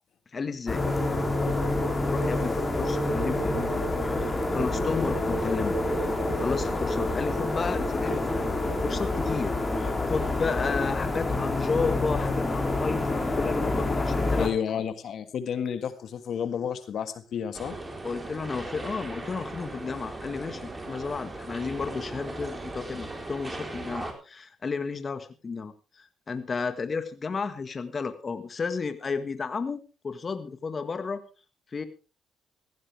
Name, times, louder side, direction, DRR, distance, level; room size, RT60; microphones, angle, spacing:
voice 1, 0.3-0.9 2.0-5.8 6.4-14.5 18.0-31.2 31.7-31.8, left 5 dB, 35° left, 9 dB, 1.6 m, -32 dB
sound 1, 0.7-14.5, left 2 dB, 20° left, 4.6 m, -27 dB
voice 2, 14.4-17.8, left 8 dB, 65° left, 10 dB, 1.6 m, -31 dB
sound 2, 17.5-24.1, right 2 dB, 20° right, 3.8 m, -38 dB
15.5 x 15.5 x 3.4 m, 0.33 s
cardioid pair, 90°, 0 cm